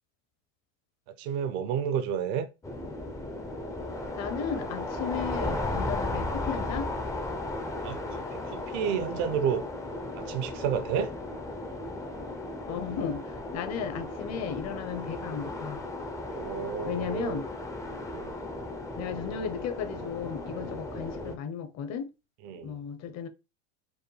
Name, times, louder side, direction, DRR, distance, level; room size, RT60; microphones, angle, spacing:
voice 1, 1.2-2.5 5.4-5.6 7.3-8.0 8.3-9.6 10.2-11.1 14.4-14.5 16.3-17.4 18.1-18.4 22.4-22.8, right 7 dB, 60° right, 0.6 m, -31 dB
sound 1, 2.6-21.4, left 2 dB, 10° left, 0.4 m, -35 dB
voice 2, 4.2-6.9 12.7-15.8 16.8-17.5 19.0-22.1 22.6-23.3, left 7 dB, 45° left, 0.8 m, -35 dB
4.9 x 2.2 x 3.2 m
supercardioid pair, 105°, 37 cm